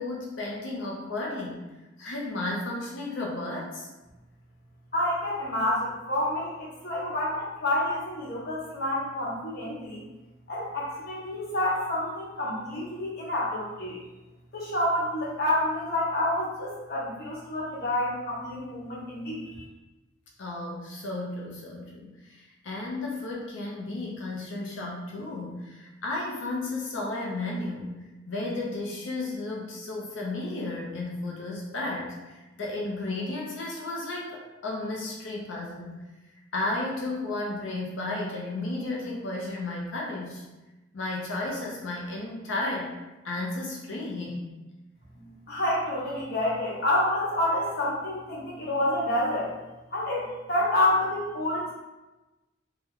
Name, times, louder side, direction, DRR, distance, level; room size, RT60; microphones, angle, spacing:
voice 1, 0.0-1.6 2.0-3.9 20.4-28.0 28.3-36.0 36.5-40.4 40.9-42.9 43.2-44.5, left 2 dB, 80° left, -2 dB, 0.6 m, -33 dB
voice 2, 4.9-10.0 10.5-14.0 14.5-19.6 45.1-49.5 49.9-51.7, left 1 dB, 55° left, -5 dB, 1.0 m, -28 dB
3.0 x 2.2 x 3.6 m, 1.1 s
head